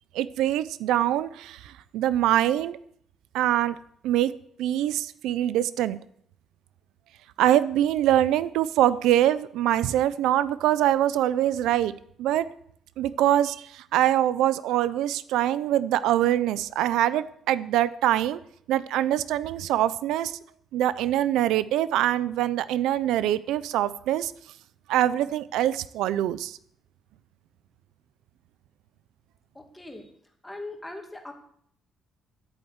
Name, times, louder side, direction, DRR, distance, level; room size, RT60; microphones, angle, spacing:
voice 1, 0.1-2.8 3.3-3.8 4.0-6.0 7.4-11.9 12.2-12.5 13.0-18.4 18.7-20.4 20.7-24.3 24.9-26.6, right 12 dB, 90° right, 15 dB, 0.6 m, -24 dB
voice 2, 29.5-30.1 30.4-31.3, left 2 dB, 10° left, 4 dB, 2.2 m, -40 dB
10.5 x 9.0 x 8.1 m, 0.66 s
cardioid pair, 135°, 0 cm